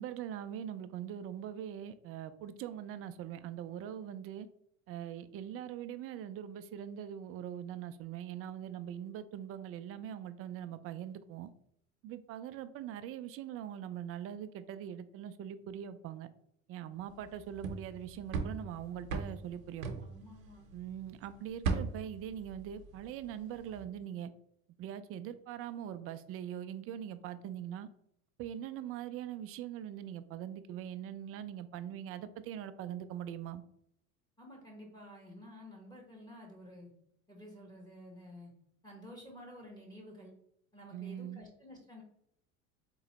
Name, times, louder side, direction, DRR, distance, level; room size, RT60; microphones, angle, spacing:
voice 1, 0.0-4.5 4.9-11.5 12.0-16.3 16.7-19.9 20.7-24.3 24.8-27.9 28.4-33.6 40.9-41.4, right 10 dB, 35° right, 12 dB, 0.4 m, -42 dB
sound 1, 17.2-20.9 21.2-23.3 23.5-23.8, right 4 dB, 85° right, 0.8 m, -38 dB
voice 2, 20.0-20.7 34.4-36.9 37.3-38.5 38.8-40.3 40.7-42.0, left 1 dB, 10° left, -1 dB, 1.3 m, -51 dB
3.9 x 2.9 x 3.0 m, 0.73 s
hypercardioid pair, 90°, 40 cm